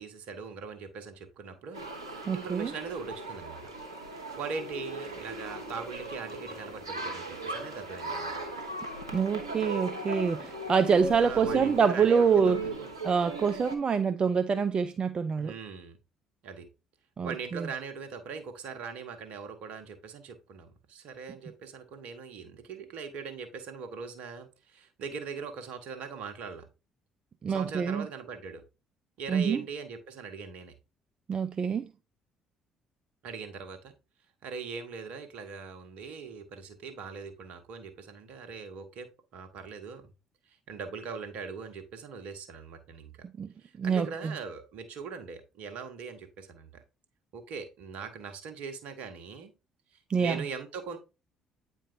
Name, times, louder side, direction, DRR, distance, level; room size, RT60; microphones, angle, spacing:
voice 1, 0.0-3.7 4.3-8.6 11.2-12.9 15.4-16.0 16.4-16.7 17.2-26.7 27.5-28.6 29.2-30.7 33.2-33.9 34.4-40.1 40.5-43.1 43.6-46.7 47.3-49.5 50.2-51.0, right 5 dB, 60° right, 1.2 m, -41 dB
sound 1, 1.7-13.8, right 2 dB, 85° right, 0.9 m, -38 dB
voice 2, 2.3-2.7 9.1-12.6 13.0-15.5 17.2-17.7 27.4-28.1 29.3-29.6 31.3-31.9 43.4-43.5 43.8-44.3 50.1-50.4, right 6 dB, 35° right, 0.4 m, -26 dB
8.8 x 4.5 x 2.6 m
figure-of-eight pair, 50°, 3 cm